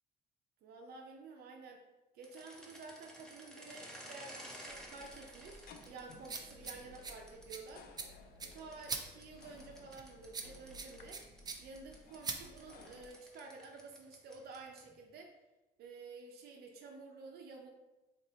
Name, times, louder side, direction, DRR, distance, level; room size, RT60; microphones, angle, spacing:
voice 1, 0.6-1.8 2.1-7.9 8.5-11.2 11.6-15.3 15.8-17.7, right 4 dB, 70° right, 2 dB, 0.6 m, -51 dB
sound 1, 2.2-7.7 8.5-15.0, equal, 5° left, 0.7 m, -54 dB
sound 2, 4.7-13.1, right 4 dB, 25° right, 0.4 m, -46 dB
sound 3, 5.3-13.0, left 5 dB, 65° left, 0.5 m, -60 dB
3.3 x 2.7 x 4.2 m, 1.0 s
cardioid pair, 110°, 17 cm